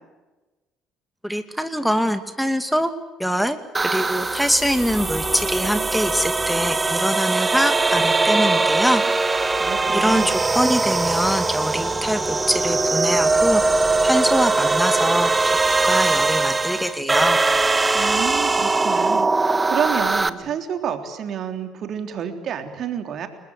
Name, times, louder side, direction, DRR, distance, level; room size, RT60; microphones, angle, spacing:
voice 1, 1.2-2.9 3.2-3.6 3.9-9.0 9.9-13.6 14.0-15.3 15.8-17.4, equal, ahead, 9 dB, 2.4 m, -23 dB
sound 1, 3.7-20.3, right 3 dB, 20° right, 1.6 m, -21 dB
voice 2, 9.6-10.3 17.9-23.3, right 8 dB, 50° right, 6 dB, 3.6 m, -29 dB
29.5 x 21.0 x 8.4 m, 1.2 s
hypercardioid pair, 55°, 0 cm